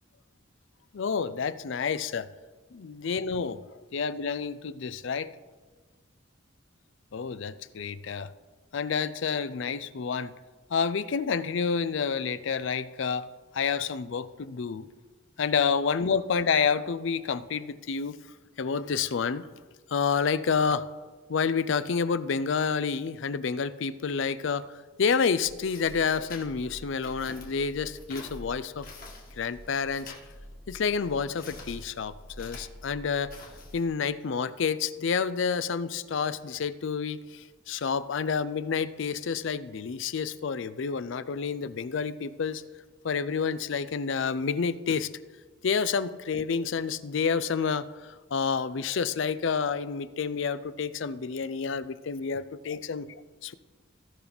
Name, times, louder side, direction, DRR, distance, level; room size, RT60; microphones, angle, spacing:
voice 1, 0.9-2.3 2.7-3.7 3.9-5.3 7.1-8.3 8.7-10.3 10.7-13.3 13.5-14.9 15.4-18.2 18.6-19.4 19.9-20.9 21.3-28.9 29.4-30.1 30.7-33.3 33.7-42.6 43.0-45.1 45.6-53.1 53.4-53.5, left 6 dB, 60° left, 15 dB, 0.4 m, -29 dB
sound 1, 25.4-33.8, left 1 dB, 45° left, 2.0 m, -46 dB
17.0 x 6.0 x 4.0 m, 1.3 s
head